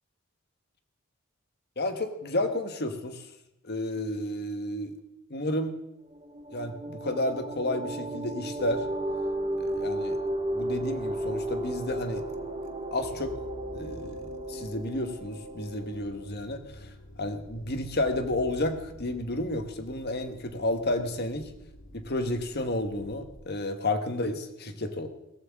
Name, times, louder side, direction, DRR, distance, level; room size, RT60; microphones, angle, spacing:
voice 1, 1.8-3.3 3.6-5.0 5.3-5.8 6.5-8.8 9.6-10.2 10.5-12.2 12.9-13.3 13.7-16.9 17.2-21.5 21.9-25.1, left 1 dB, 50° left, 7 dB, 1.4 m, -31 dB
sound 1, 6.1-16.3, right 1 dB, 30° right, 1.3 m, -34 dB
sound 2, 13.0-23.4, equal, 90° left, 2.2 m, -49 dB
17.5 x 14.5 x 3.7 m, 0.87 s
head